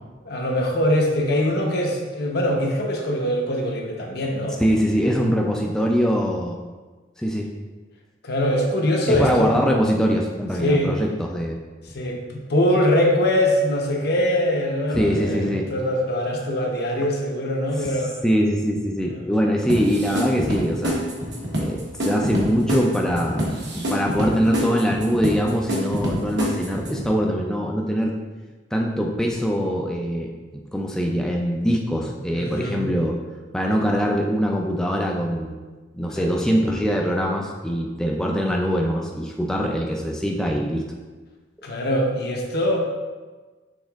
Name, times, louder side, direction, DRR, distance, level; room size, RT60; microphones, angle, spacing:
voice 1, 0.2-4.6 8.2-9.5 10.6-10.9 11.9-18.1 19.1-19.2 32.3-32.8 36.1-36.4 41.6-43.0, left 1 dB, 60° left, 0 dB, 0.7 m, -22 dB
voice 2, 4.6-6.6 7.2-7.5 9.1-11.6 14.9-15.7 18.2-21.0 21.6-28.1 28.7-33.1 33.5-35.5 35.9-40.8, equal, 5° left, -1 dB, 0.3 m, -23 dB
sound 1, 19.7-27.1, equal, 70° right, 1.0 m, -27 dB
6.3 x 3.5 x 2.3 m, 1.3 s
head